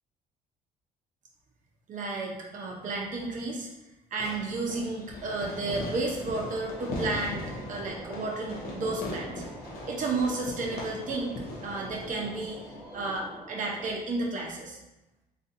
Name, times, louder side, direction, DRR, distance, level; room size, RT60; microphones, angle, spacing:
voice 1, 1.9-3.7 4.1-7.4 7.7-9.4 9.8-12.6 12.9-14.8, right 3 dB, 50° right, -1 dB, 0.7 m, -32 dB
Fireworks, 4.2-13.2, left 2 dB, 70° left, 0.8 m, -40 dB
sound 1, 6.4-14.0, right 1 dB, 5° right, 1.0 m, -47 dB
3.9 x 2.7 x 2.6 m, 0.95 s
cardioid pair, 110°, 17 cm